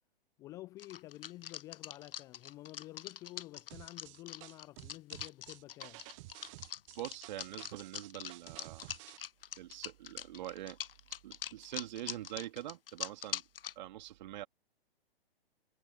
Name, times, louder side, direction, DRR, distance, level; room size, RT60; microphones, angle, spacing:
voice 1, 0.4-6.0, left 17 dB, 10° left, 0.3 m, -50 dB
sound 1, 0.8-13.7, left 9 dB, 70° left, 0.7 m, -43 dB
sound 2, 3.7-9.2, right 23 dB, 35° right, 0.8 m, -52 dB
voice 2, 7.0-8.9 9.6-10.8 11.2-13.4 13.8-14.5, right 14 dB, 50° right, 2.8 m, -44 dB
figure-of-eight pair, 120°, 30 cm